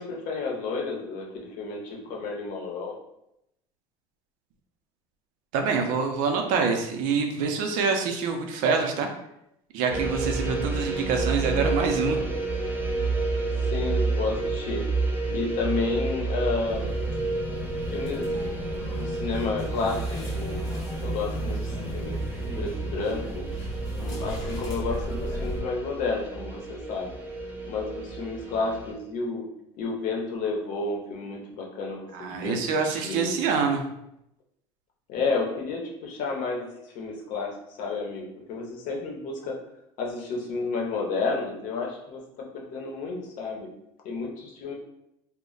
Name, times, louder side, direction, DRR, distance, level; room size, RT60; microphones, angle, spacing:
voice 1, 0.0-2.9 13.6-14.8 15.3-16.9 17.9-18.6 19.0-20.0 20.3-20.6 21.0-23.4 24.0-27.1 27.7-29.5 29.8-32.6 32.9-33.3 35.1-36.7 36.9-39.5 40.0-43.7 44.0-44.7, left 4 dB, 65° left, 0 dB, 0.7 m, -31 dB
voice 2, 5.5-9.1 9.7-12.2 32.1-33.8, right 5 dB, 70° right, 4 dB, 0.5 m, -26 dB
sound 1, 9.9-28.9, right 3 dB, 15° right, 0.7 m, -30 dB
sound 2, 16.6-25.6, left 2 dB, 25° left, 0.9 m, -36 dB
2.1 x 2.1 x 3.8 m, 0.82 s
supercardioid pair, 85°, 14 cm